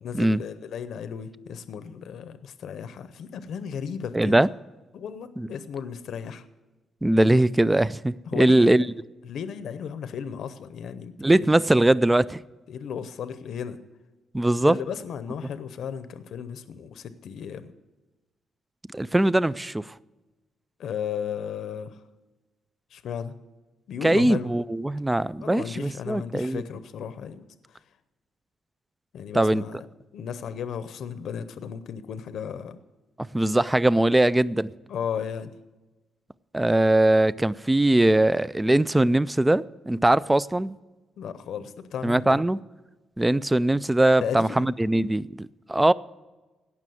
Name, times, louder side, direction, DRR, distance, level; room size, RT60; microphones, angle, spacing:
voice 1, 0.0-4.4 4.9-6.4 8.3-8.8 9.2-11.5 12.7-13.8 14.7-17.7 20.8-22.0 22.9-23.3 23.9-24.5 25.4-27.8 29.1-29.9 30.1-32.8 34.9-35.5 41.2-42.4 44.2-44.7, left 7 dB, 65° left, 0.7 m, -35 dB
voice 2, 4.1-4.5 5.4-5.5 7.0-8.8 11.2-12.4 14.3-14.8 18.9-19.9 24.0-26.6 29.3-29.6 33.3-34.7 36.5-40.8 42.0-42.6 43.2-45.9, right 1 dB, 10° right, 0.3 m, -21 dB
17.0 x 6.1 x 7.8 m
cardioid pair, 145°, 0 cm